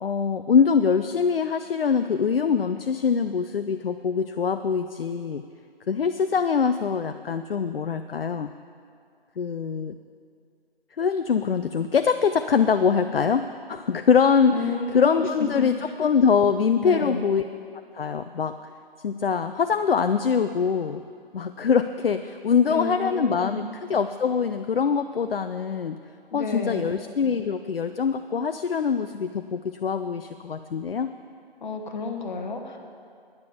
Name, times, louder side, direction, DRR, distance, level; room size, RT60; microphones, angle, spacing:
voice 1, 0.0-5.4 5.9-8.5 9.4-9.9 11.0-17.4 17.9-18.5 19.0-21.0 21.3-26.0 26.3-31.1, left 6 dB, 70° left, 9 dB, 0.5 m, -23 dB
voice 2, 14.5-15.3 15.6-15.7 16.8-17.3 22.7-23.6 26.3-26.9 31.6-32.8, left 3 dB, 50° left, 4 dB, 1.4 m, -31 dB
10.5 x 9.7 x 7.0 m, 2.4 s
figure-of-eight pair, 150°, 30 cm